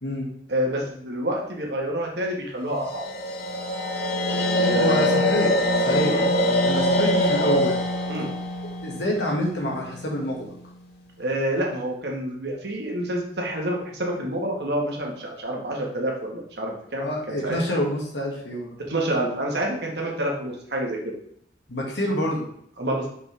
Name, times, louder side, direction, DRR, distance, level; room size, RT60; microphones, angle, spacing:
voice 1, 0.5-3.0 4.6-5.1 6.1-6.3 8.1-8.3 11.2-17.6 18.9-21.1 22.8-23.1, right 1 dB, 70° right, 0 dB, 1.5 m, -28 dB
sound 1, 2.8-9.9, left 1 dB, 60° left, 1.0 m, -24 dB
voice 2, 4.3-5.5 5.8-6.3 6.6-7.8 8.8-10.5 17.0-18.8 21.7-22.5, equal, 80° left, -2 dB, 1.8 m, -27 dB
5.3 x 5.2 x 3.4 m, 0.69 s
head